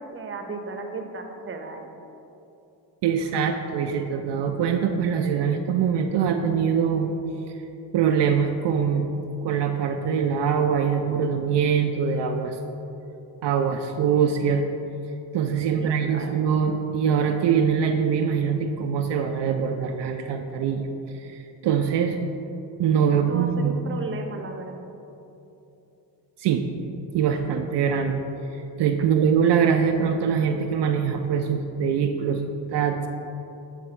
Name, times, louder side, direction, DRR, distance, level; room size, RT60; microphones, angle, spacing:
voice 1, 0.0-1.8 15.8-16.4 23.1-24.9, right 3 dB, 30° right, 4 dB, 0.7 m, -35 dB
voice 2, 3.0-7.1 7.9-9.1 9.4-12.6 13.4-14.7 15.3-20.9 21.2-21.3 21.6-22.2 22.8-23.8 26.4-26.6 27.1-28.2 28.8-33.1, right 7 dB, 65° right, 4 dB, 0.5 m, -23 dB
8.6 x 3.4 x 4.3 m, 2.9 s
cardioid pair, 80°, 44 cm